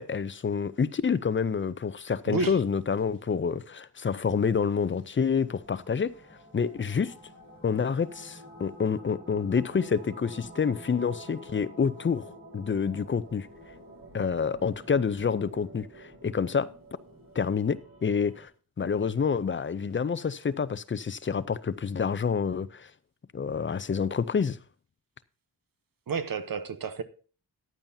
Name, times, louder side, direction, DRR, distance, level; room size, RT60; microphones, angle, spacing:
voice 1, 0.0-6.1 6.5-7.1 7.6-13.5 14.1-16.7 17.4-18.5 18.8-22.9 23.3-24.6, left 6 dB, 30° left, 0.5 m, -28 dB
voice 2, 2.3-2.6 26.1-27.0, right 5 dB, 60° right, 0.9 m, -30 dB
sound 1, 5.3-18.5, right 1 dB, 35° right, 4.3 m, -49 dB
14.5 x 10.5 x 2.7 m
wide cardioid pair, 125°, 39 cm